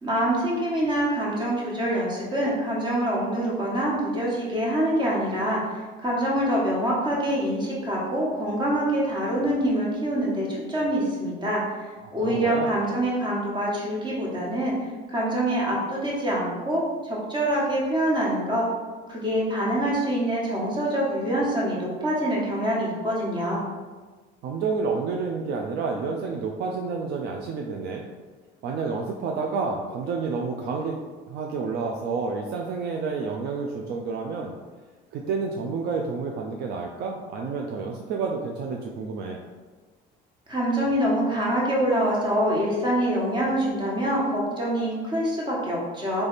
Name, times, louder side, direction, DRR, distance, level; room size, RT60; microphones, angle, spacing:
voice 1, 0.0-11.6 12.1-14.7 15.1-18.7 19.1-23.7 40.5-46.3, right 1 dB, 25° right, -4 dB, 1.4 m, -25 dB
voice 2, 12.0-12.7 24.4-28.0 28.6-31.0 31.3-34.6 35.1-39.4, right 4 dB, 60° right, 1 dB, 0.5 m, -29 dB
3.4 x 3.3 x 4.0 m, 1.4 s
cardioid pair, 115°, 19 cm